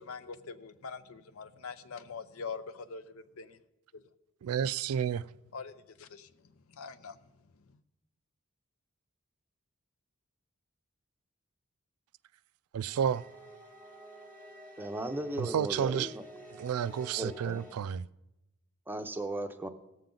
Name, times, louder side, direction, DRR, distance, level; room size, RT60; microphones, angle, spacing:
voice 1, 0.0-3.6 3.9-4.0 5.5-7.8, left 5 dB, 75° left, 0.6 m, -44 dB
voice 2, 4.4-5.3 12.7-13.2 15.4-16.1 16.5-18.1, right 8 dB, 90° right, 0.3 m, -31 dB
sound 1, 12.8-17.7, equal, 5° left, 1.2 m, -51 dB
voice 3, 14.8-16.2 17.2-17.6 18.9-19.7, right 2 dB, 10° right, 0.6 m, -36 dB
18.0 x 7.3 x 3.8 m
head